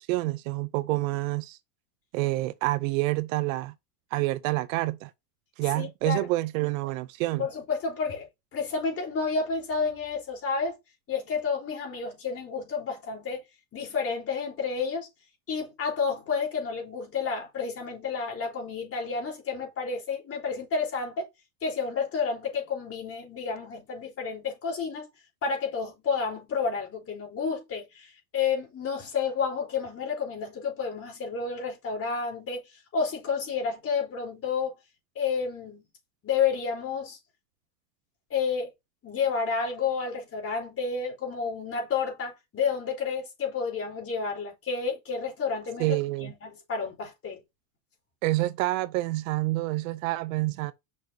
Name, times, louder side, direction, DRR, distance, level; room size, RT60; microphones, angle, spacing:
voice 1, 0.0-1.6 2.1-3.7 4.1-5.1 5.6-7.5 45.8-46.3 48.2-50.7, right 19 dB, 60° right, 0.7 m, -28 dB
voice 2, 5.8-6.3 7.4-10.8 11.1-13.4 13.7-15.1 15.5-21.2 21.6-25.1 25.4-32.6 32.9-34.7 35.2-35.9 36.2-37.2 38.3-38.7 39.0-47.4, left 5 dB, 30° left, 4.1 m, -30 dB
6.6 x 6.3 x 2.8 m
supercardioid pair, 120°, 46 cm